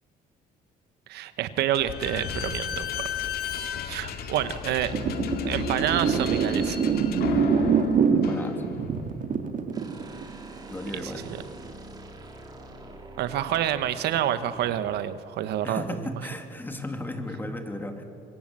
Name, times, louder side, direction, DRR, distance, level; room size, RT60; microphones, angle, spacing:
voice 1, 1.1-3.1 3.8-4.9 5.4-6.8 10.9-11.4 13.2-16.0, right 11 dB, 75° right, 12 dB, 1.1 m, -28 dB
Slam / Squeak, 1.7-9.0, left 8 dB, 70° left, 2.0 m, -33 dB
sound 1, 4.9-11.1 11.4-11.7, right 6 dB, 50° right, 2.0 m, -25 dB
voice 2, 8.1-8.6 10.7-11.3 15.6-18.0, left 1 dB, 10° left, 5 dB, 2.6 m, -35 dB
sound 2, 9.7-15.0, right 2 dB, 25° right, 3.6 m, -44 dB
24.5 x 22.5 x 7.5 m, 2.8 s
cardioid pair, 110°, 17 cm